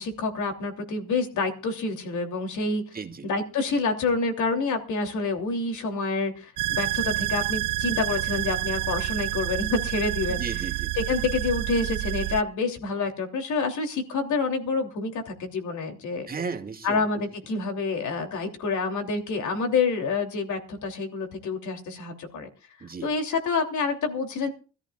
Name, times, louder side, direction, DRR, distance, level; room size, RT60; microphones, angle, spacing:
voice 1, 0.0-2.8 3.2-10.4 10.9-16.3 16.8-22.5 23.0-24.5, left 4 dB, 75° left, 3.1 m, -28 dB
voice 2, 2.9-3.3 10.3-11.0 16.3-17.1 22.8-23.1, right 5 dB, 30° right, 2.2 m, -35 dB
sound 1, 6.6-12.4, right 18 dB, 85° right, 0.6 m, -28 dB
24.0 x 14.0 x 2.4 m
cardioid pair, 90°, 30 cm